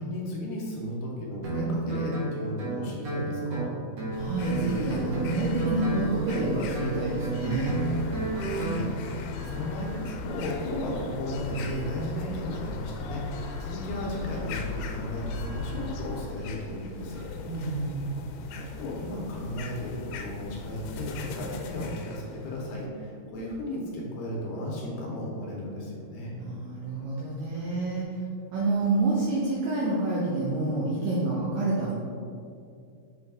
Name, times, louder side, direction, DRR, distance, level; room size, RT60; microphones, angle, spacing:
voice 1, 0.0-3.7 8.4-17.2 18.6-26.3, left 1 dB, 70° left, -3 dB, 2.5 m, -35 dB
Guitar, 1.4-8.8, right 2 dB, 55° right, 2.1 m, -31 dB
sound 1, 4.1-22.9, left 3 dB, 90° left, 2.6 m, -38 dB
voice 2, 4.2-7.8 17.5-18.0 26.3-28.2 28.5-31.9, right 2 dB, 80° right, -5 dB, 1.9 m, -28 dB
7.7 x 3.8 x 3.6 m, 2.4 s
omnidirectional pair, 4.6 m